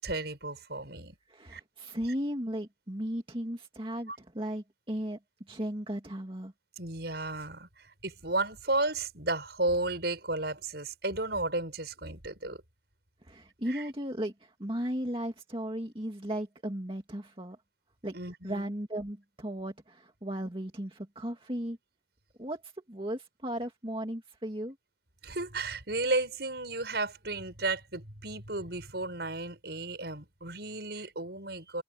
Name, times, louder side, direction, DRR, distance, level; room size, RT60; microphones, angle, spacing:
voice 1, 0.0-1.2 1.5-1.6 4.1-4.2 6.8-12.6 13.7-13.9 18.1-18.7 25.2-31.8, right 2 dB, 65° right, 6.8 m, -33 dB
voice 2, 1.3-5.2 5.5-6.5 13.2-17.6 18.0-18.1 18.4-21.8 22.4-24.8, equal, 30° right, 2.3 m, -36 dB
head